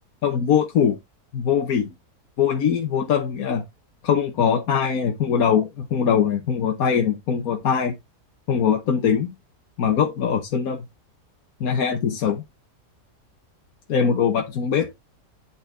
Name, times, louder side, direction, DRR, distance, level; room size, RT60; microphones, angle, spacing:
voice 1, 0.2-1.0 1.3-1.9 2.4-3.6 4.0-7.9 8.5-9.3 9.8-10.8 11.6-12.4 13.9-14.9, left 7 dB, 60° left, 1.4 m, -22 dB
11.0 x 4.3 x 3.6 m
omnidirectional pair, 1.8 m